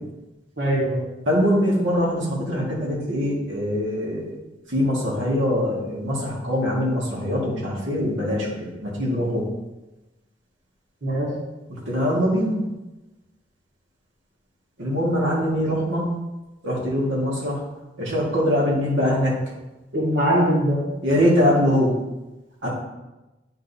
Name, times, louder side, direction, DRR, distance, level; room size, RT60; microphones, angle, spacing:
voice 1, 0.6-1.1 11.0-11.3 19.9-20.8 22.6-22.7, equal, 70° right, -4 dB, 1.8 m, -21 dB
voice 2, 1.3-4.3 4.7-8.5 8.8-9.4 11.7-12.6 14.8-16.1 16.6-17.6 18.0-19.3 21.0-21.9 22.6-22.7, equal, 90° right, -4 dB, 1.8 m, -22 dB
9.9 x 5.2 x 2.7 m, 1.0 s
head